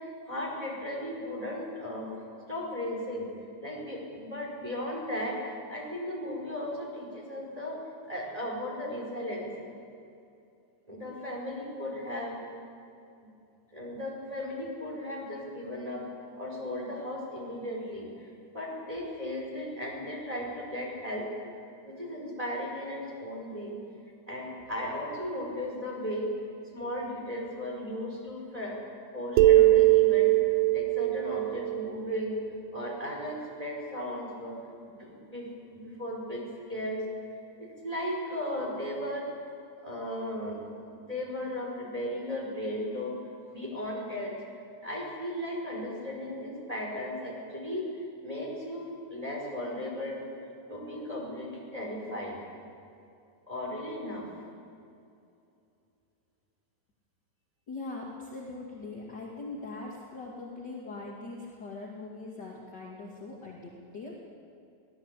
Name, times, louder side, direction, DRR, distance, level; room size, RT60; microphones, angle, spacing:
voice 1, 0.0-2.1 2.5-3.3 3.6-5.4 5.7-7.8 8.1-9.5 10.9-12.4 13.2-13.3 13.7-16.0 16.4-18.1 18.5-21.3 21.8-23.7 24.3-26.3 26.7-28.8 29.1-30.3 30.7-32.4 32.7-34.6 34.9-36.4 36.7-37.0 37.6-39.3 39.8-40.6 40.9-43.2 43.5-44.3 44.8-47.8 48.2-50.2 50.7-52.3 53.5-54.3, left 1 dB, 10° right, -2 dB, 5.3 m, -36 dB
sound 1, 29.4-32.9, right 17 dB, 90° right, 1.4 m, -22 dB
voice 2, 57.7-64.2, left 3 dB, 35° left, -3 dB, 2.6 m, -41 dB
24.0 x 18.0 x 8.3 m, 2.6 s
omnidirectional pair, 3.6 m